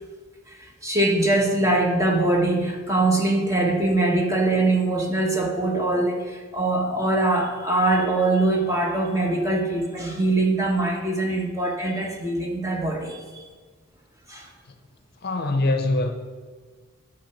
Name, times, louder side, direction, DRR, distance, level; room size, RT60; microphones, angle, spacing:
voice 1, 0.5-13.5 14.3-14.5, right 2 dB, 15° right, 1.3 m, -23 dB
voice 2, 15.2-16.1, left 2 dB, 50° left, 0.7 m, -23 dB
9.2 x 6.7 x 5.8 m
head